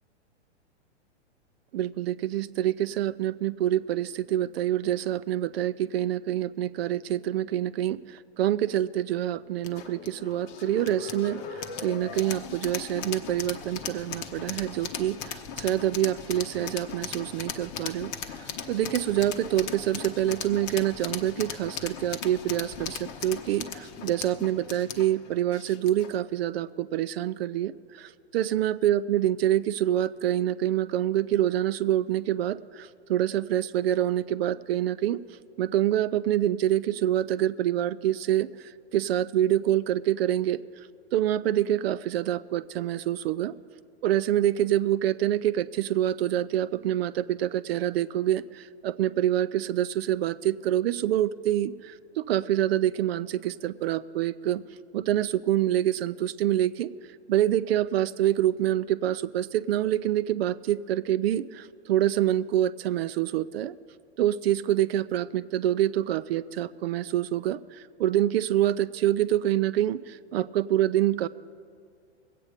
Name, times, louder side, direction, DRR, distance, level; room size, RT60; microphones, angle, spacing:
voice 1, 1.7-35.2 35.6-43.5 44.0-54.6 54.9-56.9 57.3-63.7 64.2-71.3, right 12 dB, 60° right, 15 dB, 0.5 m, -26 dB
sound 1, 9.6-26.2, left 7 dB, 30° left, 0.8 m, -38 dB
21.0 x 8.6 x 5.0 m, 2.3 s
hypercardioid pair, 130°, 35 cm